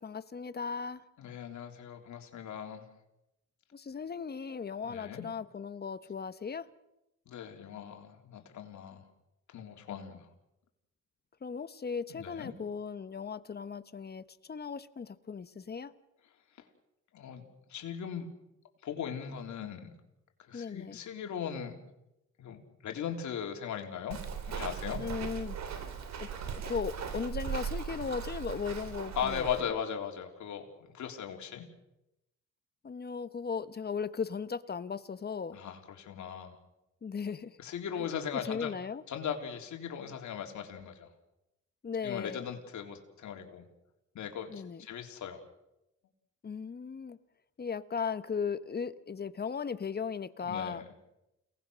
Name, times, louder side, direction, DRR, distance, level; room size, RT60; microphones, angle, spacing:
voice 1, 0.0-1.0 3.7-6.7 11.4-15.9 20.5-21.0 25.0-25.6 26.2-29.7 32.8-35.6 37.0-37.6 38.5-39.0 41.8-42.4 44.5-44.8 46.4-47.2 47.6-50.8, left 6 dB, 30° left, 12 dB, 1.2 m, -37 dB
voice 2, 1.2-2.9 4.8-5.3 7.3-9.0 9.5-10.3 12.1-12.5 17.1-17.4 17.7-18.3 18.8-19.9 20.4-21.9 22.4-24.2 24.5-25.0 29.1-31.7 35.5-36.6 37.6-38.7 39.1-41.1 42.0-43.7 44.1-45.4 50.4-50.9, left 8 dB, 70° left, 3 dB, 3.7 m, -38 dB
Walk footsteps, 24.1-29.6, right 7 dB, 65° right, 2.9 m, -38 dB
29.5 x 19.0 x 6.4 m, 0.90 s
cardioid pair, 90°, 30 cm